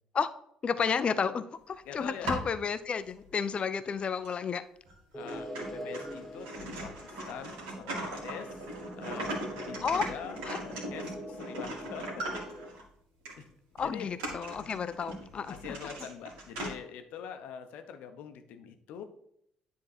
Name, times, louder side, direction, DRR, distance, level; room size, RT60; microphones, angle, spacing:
voice 1, 0.6-4.6 9.8-10.1 10.4-10.6 13.8-15.5, left 6 dB, 40° left, 13 dB, 0.6 m, -31 dB
voice 2, 1.8-2.4 5.1-8.7 9.0-12.2 13.4-13.5 13.8-14.1 14.6-14.7 15.5-19.0, left 8 dB, 65° left, 7 dB, 0.9 m, -44 dB
sound 1, 1.9-2.6 3.2-3.3 4.2-4.4 4.9-5.0 5.3-12.8 13.3-13.4 13.8-16.7, right 1 dB, 75° right, 2.1 m, -39 dB
sound 2, 5.1-12.7, equal, 10° left, 1.6 m, -44 dB
9.9 x 3.8 x 4.3 m, 0.73 s
hypercardioid pair, 50°, 3 cm